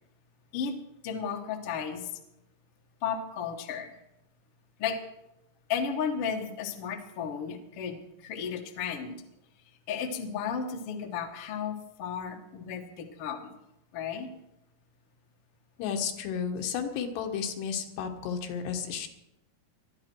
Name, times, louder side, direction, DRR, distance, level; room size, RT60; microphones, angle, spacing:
voice 1, 1.0-2.2 3.0-3.9 4.8-5.0 5.7-9.2 9.9-13.5 13.9-14.3, left 7 dB, 60° left, 3 dB, 1.6 m, -34 dB
voice 2, 15.8-19.1, left 7 dB, 75° left, 5 dB, 3.4 m, -32 dB
20.5 x 12.5 x 4.6 m, 0.87 s
omnidirectional pair, 4.9 m